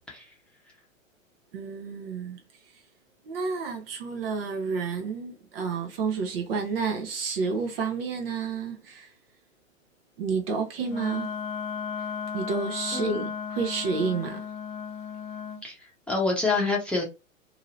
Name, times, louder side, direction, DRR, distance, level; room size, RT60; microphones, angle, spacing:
voice 1, 1.5-2.4 3.2-9.1 10.2-11.3 12.3-14.5, right 5 dB, 45° right, 0.8 m, -30 dB
Wind instrument woodwind instrument, 10.8-15.6, left 6 dB, 30° left, 0.7 m, -35 dB
voice 2, 12.9-13.2 15.6-15.7 16.1-17.0, left 3 dB, 5° left, 0.9 m, -26 dB
2.8 x 2.7 x 2.9 m
figure-of-eight pair, 105°, 40 cm